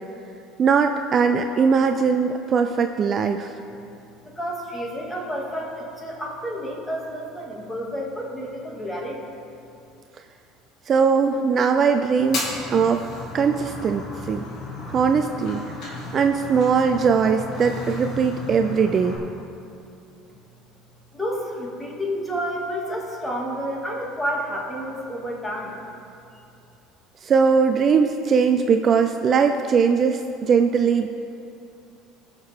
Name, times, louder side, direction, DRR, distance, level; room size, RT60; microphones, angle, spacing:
voice 1, 0.6-3.5 10.9-13.0 13.3-14.5 14.9-19.2 27.2-31.1, right 6 dB, 35° right, 6 dB, 0.4 m, -20 dB
voice 2, 4.2-9.2 21.1-25.8, equal, 10° left, -2 dB, 2.3 m, -30 dB
Fire, 12.2-19.2, left 2 dB, 60° left, 2.4 m, -34 dB
18.5 x 6.5 x 3.6 m, 2.6 s
supercardioid pair, 120°, 0 cm